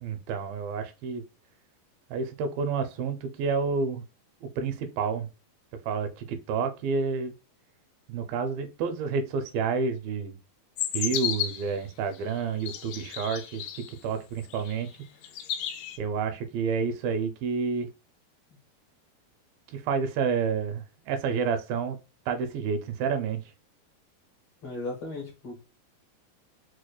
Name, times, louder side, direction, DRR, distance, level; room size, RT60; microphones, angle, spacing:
voice 1, 0.0-1.2 2.1-4.0 4.4-5.3 5.8-7.3 8.1-10.4 10.9-14.9 16.0-17.9 19.7-22.0 22.3-23.4, right 5 dB, 80° right, 7 dB, 2.3 m, -29 dB
sound 1, 10.8-11.7 12.4-13.9 14.5-15.0 15.2-16.0, left 10 dB, 90° left, 1.8 m, -33 dB
voice 2, 24.6-25.6, left 2 dB, 70° left, -2 dB, 1.5 m, -36 dB
6.2 x 2.1 x 2.3 m, 0.30 s
omnidirectional pair, 4.2 m